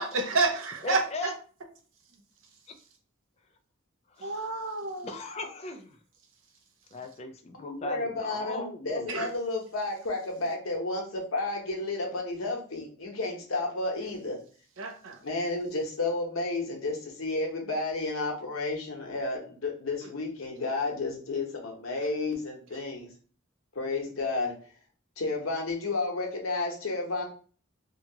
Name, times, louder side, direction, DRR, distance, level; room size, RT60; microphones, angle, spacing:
voice 1, 0.0-1.0 4.2-5.1 9.1-9.3 14.8-15.2, right 3 dB, 75° right, 4 dB, 0.6 m, -29 dB
voice 2, 0.8-1.3 4.2-4.5 5.0-6.0 6.9-9.1, left 2 dB, 30° left, 6 dB, 0.3 m, -38 dB
voice 3, 7.5-14.4 15.2-23.1 23.7-24.6 25.2-27.2, left 3 dB, 90° left, 1 dB, 0.8 m, -32 dB
2.8 x 2.3 x 2.7 m, 0.41 s
head